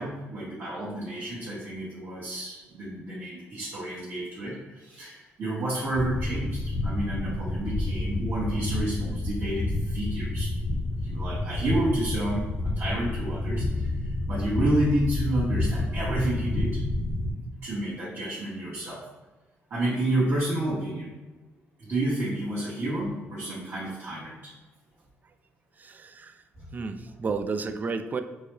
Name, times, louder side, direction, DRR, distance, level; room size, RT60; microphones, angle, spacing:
voice 1, 0.0-10.5 11.0-16.8 17.6-19.0 19.7-21.1 21.8-24.5, right 1 dB, 50° right, -9 dB, 1.3 m, -30 dB
sound 1, 5.9-17.3, left 2 dB, 65° left, 0.9 m, -29 dB
voice 2, 25.8-26.3 26.7-28.2, right 4 dB, 35° right, 10 dB, 0.3 m, -31 dB
4.5 x 2.2 x 3.1 m, 1.2 s
cardioid pair, 85°, 5 cm